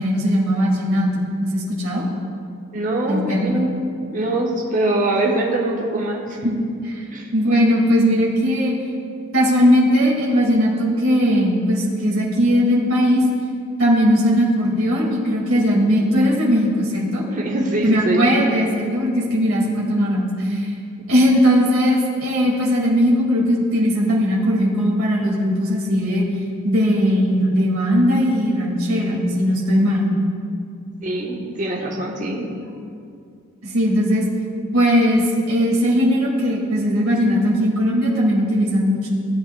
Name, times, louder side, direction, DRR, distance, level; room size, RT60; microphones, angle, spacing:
voice 1, 0.0-2.1 3.1-3.5 6.4-7.1 7.3-8.8 9.3-13.2 13.8-17.2 17.8-20.7 21.1-26.3 26.6-30.1 33.6-34.3 34.7-39.1, equal, 75° right, -4 dB, 2.0 m, -18 dB
voice 2, 2.7-6.4 7.1-7.3 17.3-18.3 31.0-32.7, right 1 dB, 35° right, -2 dB, 1.0 m, -23 dB
16.0 x 9.0 x 2.2 m, 2.4 s
head